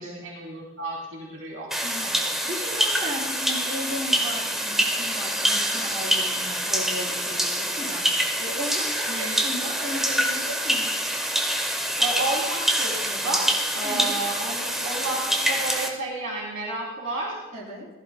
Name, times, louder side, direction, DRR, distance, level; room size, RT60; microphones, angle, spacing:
voice 1, 0.0-1.7 2.0-2.2 9.1-9.3 12.0-13.5 13.7-17.4, right 2 dB, 70° right, -4 dB, 3.1 m, -31 dB
sound 1, 1.7-15.9, equal, ahead, 0.8 m, -26 dB
voice 2, 1.8-10.9 13.8-14.1 17.5-17.9, equal, 35° right, -6 dB, 3.8 m, -36 dB
15.5 x 13.5 x 2.2 m, 1.1 s
head